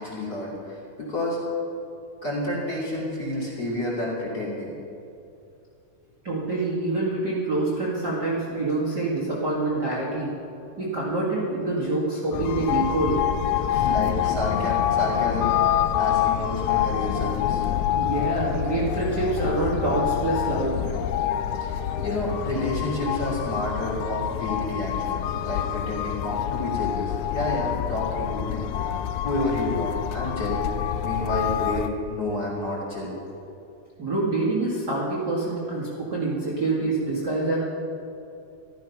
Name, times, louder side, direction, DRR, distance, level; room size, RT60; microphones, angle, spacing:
voice 1, 0.0-1.4 2.2-4.7 13.7-17.6 21.6-30.6 31.0-33.1, left 1 dB, 30° left, -5 dB, 3.1 m, -30 dB
voice 2, 6.2-10.4 10.8-13.2 13.7-13.9 17.9-20.8 34.0-37.6, right 2 dB, 35° right, -7 dB, 2.2 m, -26 dB
sound 1, 12.3-31.9, left 10 dB, 85° left, 1.7 m, -26 dB
14.0 x 13.0 x 5.8 m, 2.6 s
omnidirectional pair, 4.0 m